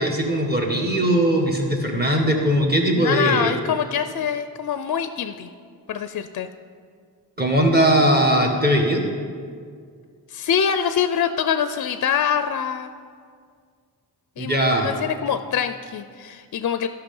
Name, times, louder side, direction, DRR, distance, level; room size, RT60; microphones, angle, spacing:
voice 1, 0.0-3.6 7.4-9.1 14.4-14.9, right 1 dB, 25° right, 0 dB, 1.6 m, -20 dB
voice 2, 2.9-5.5 5.9-6.5 10.3-12.9 14.4-16.9, left 8 dB, 50° left, 10 dB, 0.4 m, -24 dB
13.0 x 5.8 x 5.4 m, 2.1 s
wide cardioid pair, 95°, 39 cm